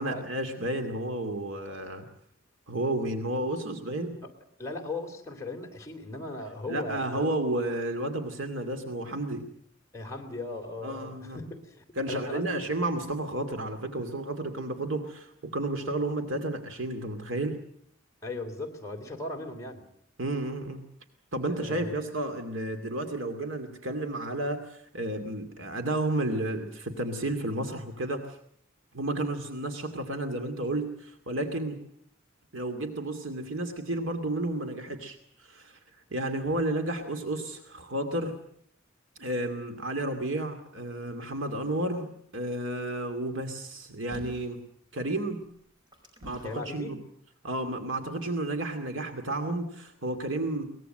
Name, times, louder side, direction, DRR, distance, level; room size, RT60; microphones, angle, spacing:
voice 1, 0.0-2.1 2.7-4.2 6.7-9.5 10.8-11.4 12.0-17.6 20.2-20.8 21.3-28.4 28.9-31.8 32.5-35.8 36.1-38.4 39.2-44.7 44.9-45.5 46.2-47.0 47.4-50.7, right 1 dB, 70° right, 7 dB, 2.5 m, -32 dB
voice 2, 4.6-7.3 9.9-12.6 18.2-19.8 21.5-22.0 46.4-47.0, left 2 dB, 15° left, 1 dB, 3.4 m, -38 dB
sound 1, 44.1-44.6 45.4-46.7 47.5-47.6, equal, 20° right, 5.3 m, -47 dB
23.0 x 20.0 x 7.8 m, 0.64 s
head